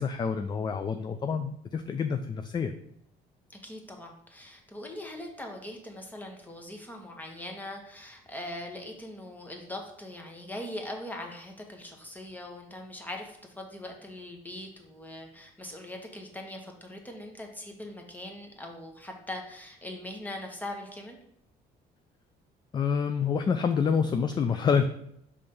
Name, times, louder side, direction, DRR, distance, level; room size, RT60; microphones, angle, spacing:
voice 1, 0.0-2.7 22.7-24.8, left 6 dB, 25° left, 8 dB, 0.3 m, -27 dB
voice 2, 3.6-21.2, left 1 dB, 10° left, 2 dB, 1.1 m, -41 dB
5.3 x 3.4 x 5.3 m, 0.72 s
cardioid pair, 110°, 17 cm